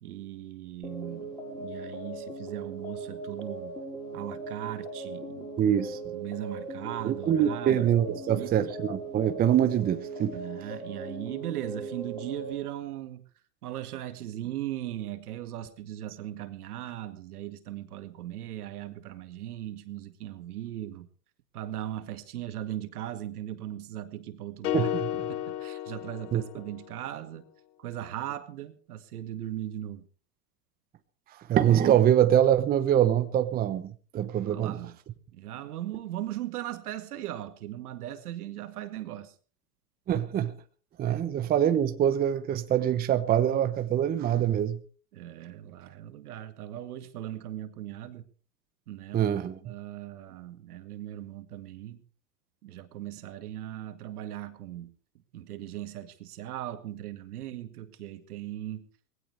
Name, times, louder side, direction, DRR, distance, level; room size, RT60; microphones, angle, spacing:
voice 1, 0.0-3.8 4.1-8.9 10.3-13.2 13.6-21.1 21.5-27.5 27.8-30.1 34.4-35.0 35.3-39.3 41.1-41.2 45.1-48.3 48.9-52.0 52.6-58.8, right 13 dB, 65° right, 2.1 m, -38 dB
sound 1, 0.8-12.5, right 3 dB, 10° left, 4.5 m, -39 dB
voice 2, 7.0-10.4 24.7-25.1 26.3-26.4 31.5-34.7 40.1-40.5 41.0-44.8 49.1-49.6, right 10 dB, 20° right, 0.9 m, -24 dB
sound 2, 24.6-27.0, left 13 dB, 70° left, 1.4 m, -33 dB
20.0 x 16.5 x 3.4 m
hypercardioid pair, 120°, 47 cm